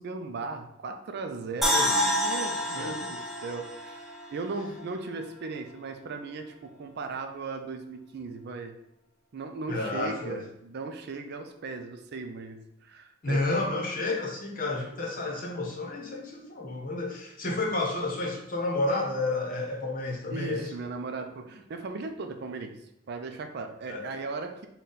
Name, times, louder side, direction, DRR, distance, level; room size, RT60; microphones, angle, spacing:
voice 1, 0.0-8.8 9.3-13.4 20.3-22.7 23.1-24.7, right 4 dB, 55° right, 6 dB, 0.4 m, -37 dB
sound 1, 1.6-4.8 5.2-5.3, equal, ahead, 0.6 m, -28 dB
voice 2, 1.7-2.2 2.8-3.1 9.7-10.4 13.2-20.7 23.9-24.0, left 2 dB, 45° left, 0 dB, 0.8 m, -31 dB
4.0 x 2.2 x 3.8 m, 0.78 s
head